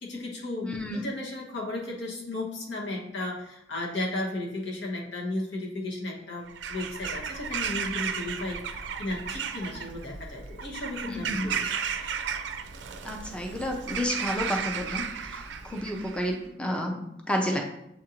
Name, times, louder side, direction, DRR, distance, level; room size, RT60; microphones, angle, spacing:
voice 1, 0.0-11.6 15.8-15.9, left 2 dB, 90° left, -2 dB, 1.1 m, -34 dB
voice 2, 0.6-1.0 11.1-11.5 13.0-17.6, equal, 5° left, 1 dB, 0.4 m, -31 dB
Bird vocalization bird call bird song / Crow, 6.5-16.4, right 7 dB, 75° right, 0.4 m, -34 dB
7.3 x 2.5 x 2.9 m, 0.79 s
head